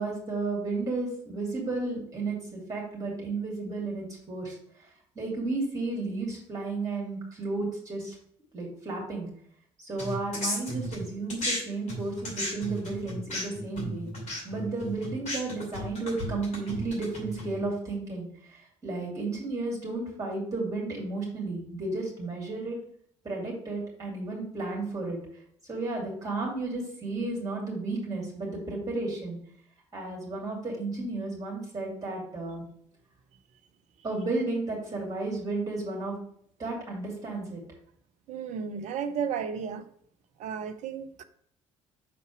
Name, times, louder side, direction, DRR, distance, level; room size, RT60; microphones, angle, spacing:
voice 1, 0.0-4.6 5.2-8.1 8.5-9.3 9.8-14.1 14.4-18.3 18.8-22.8 23.2-25.2 25.7-29.4 29.9-32.6 34.0-36.2 36.6-37.6, right 3 dB, 20° right, 2.7 m, -33 dB
sound 1, 10.0-11.6 11.9-17.6, equal, 45° left, 2.6 m, -34 dB
voice 2, 38.3-39.8 40.4-41.2, right 7 dB, 50° right, 0.6 m, -33 dB
5.9 x 4.1 x 4.7 m
figure-of-eight pair, 50°, 16 cm